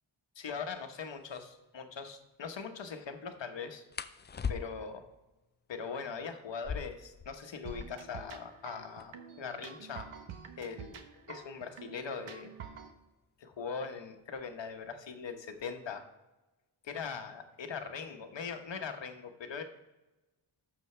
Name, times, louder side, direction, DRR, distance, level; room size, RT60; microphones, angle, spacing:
voice 1, 0.3-3.8 4.5-5.1 5.7-10.1 10.6-11.0 11.3-12.5 13.4-16.0 16.8-19.6, left 5 dB, 60° left, 6 dB, 1.2 m, -41 dB
sound 1, 0.8-0.9 1.2-1.5 3.9-5.0 6.5-8.1 8.4-8.5 8.7-9.3 10.0-12.5 13.5-13.8 14.2-14.7 15.0-15.8, left 6 dB, 25° left, 0.3 m, -42 dB
sound 2, 7.7-12.9, right 7 dB, 80° right, 1.0 m, -48 dB
12.5 x 7.0 x 3.3 m, 1.1 s
cardioid pair, 80°, 50 cm